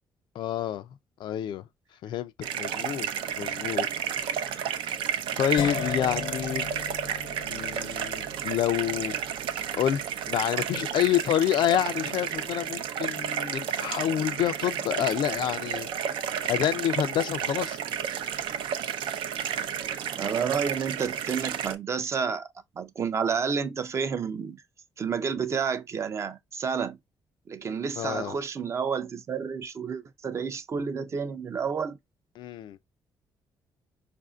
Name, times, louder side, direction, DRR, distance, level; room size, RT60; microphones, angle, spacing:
voice 1, 0.4-0.9 1.2-1.7 2.0-3.1 3.4-4.2 5.3-6.7 7.5-9.2 9.8-16.1 16.5-17.8 28.0-28.4 32.4-32.8, left 11 dB, 70° left, 0.4 m, -28 dB
sound 1, 2.4-21.8, right 8 dB, 90° right, 0.5 m, -32 dB
sound 2, 5.6-11.5, left 6 dB, 90° left, 0.8 m, -38 dB
voice 2, 20.1-22.5 22.8-24.6 25.0-27.0 27.5-32.0, right 6 dB, 35° right, 0.4 m, -30 dB
4.8 x 2.5 x 2.2 m
cardioid pair, 150°, 8 cm